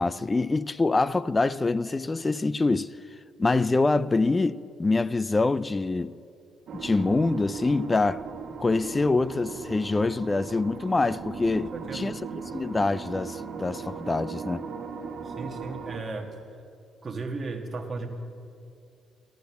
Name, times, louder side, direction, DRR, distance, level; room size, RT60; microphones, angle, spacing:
voice 1, 0.0-2.9 3.4-6.1 6.7-8.2 8.6-12.2 12.5-14.6, left 3 dB, 20° left, 0.3 m, -25 dB
sound 1, 6.7-16.0, right 5 dB, 60° right, 1.5 m, -38 dB
voice 2, 11.5-12.1 15.2-16.4 17.0-18.1, right 3 dB, 30° right, 1.4 m, -35 dB
13.5 x 9.3 x 6.9 m
cardioid pair, 120°, 0 cm